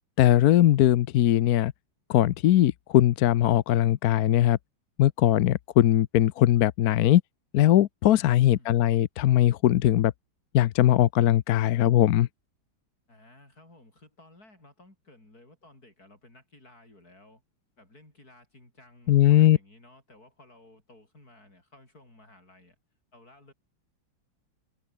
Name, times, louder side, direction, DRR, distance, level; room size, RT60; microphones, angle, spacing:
voice 1, 0.2-1.7 2.1-4.6 5.0-7.2 7.5-10.1 10.5-12.3 19.1-19.6, left 13 dB, 65° left, 1.0 m, -20 dB
voice 2, 8.0-8.8 13.1-17.4 17.8-22.8 23.1-23.5, left 2 dB, 45° left, 8.4 m, -55 dB
omnidirectional pair, 2.1 m